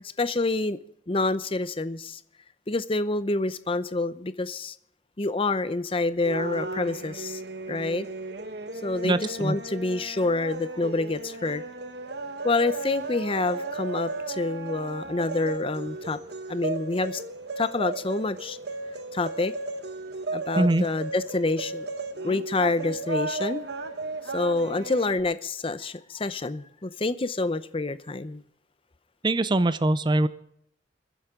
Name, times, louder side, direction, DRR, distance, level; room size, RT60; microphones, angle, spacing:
voice 1, 0.2-0.8 1.1-2.2 2.7-4.7 5.2-7.4 7.7-8.1 8.8-11.6 12.4-16.2 16.5-17.2 17.6-18.6 19.1-19.5 20.3-21.9 22.2-23.6 24.3-28.4, left 2 dB, 30° left, 0.7 m, -27 dB
sound 1, 6.2-25.2, right 3 dB, 65° right, 1.2 m, -35 dB
voice 2, 9.0-9.6 20.6-20.9 29.2-30.3, right 2 dB, 25° right, 0.6 m, -22 dB
28.5 x 10.5 x 3.7 m
head